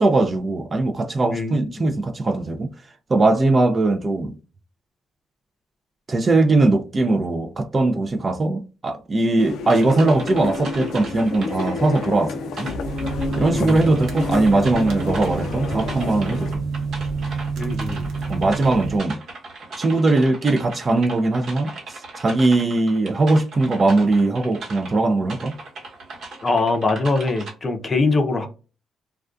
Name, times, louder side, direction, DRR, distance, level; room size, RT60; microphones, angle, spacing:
voice 1, 0.0-2.7 3.1-4.3 6.1-12.7 13.4-16.6 18.3-19.2 19.8-21.7 22.2-25.5, right 2 dB, 30° right, 0.4 m, -20 dB
voice 2, 1.3-1.9 13.5-13.9 17.6-18.1 26.4-28.5, left 3 dB, 30° left, 0.6 m, -23 dB
sound 1, 9.4-16.5, left 4 dB, 80° left, 0.4 m, -30 dB
sound 2, 9.7-12.1 12.6-25.0 25.3-27.5, right 2 dB, 60° right, 1.0 m, -38 dB
sound 3, 12.8-19.0, right 4 dB, 80° right, 0.7 m, -29 dB
2.3 x 2.2 x 2.4 m
cardioid pair, 90°, 0 cm